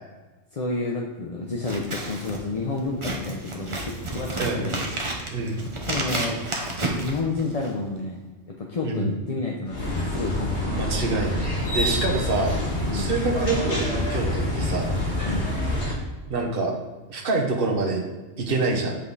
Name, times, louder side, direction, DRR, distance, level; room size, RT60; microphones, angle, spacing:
voice 1, 0.5-4.8 5.8-6.4 7.0-10.9 12.9-13.2 15.2-15.5, left 3 dB, 35° left, -2 dB, 0.8 m, -30 dB
Scissors, 1.6-7.8, right 2 dB, 25° right, 1.0 m, -31 dB
voice 2, 5.3-5.6 6.8-6.9 8.8-9.2 10.6-12.5 12.9-14.9 16.3-16.7 17.1-18.0 18.4-19.0, right 3 dB, 45° right, -1 dB, 1.4 m, -26 dB
sound 1, 9.7-15.9, left 1 dB, 60° left, 1.9 m, -26 dB
8.5 x 5.3 x 4.1 m, 1.2 s
omnidirectional pair, 1.3 m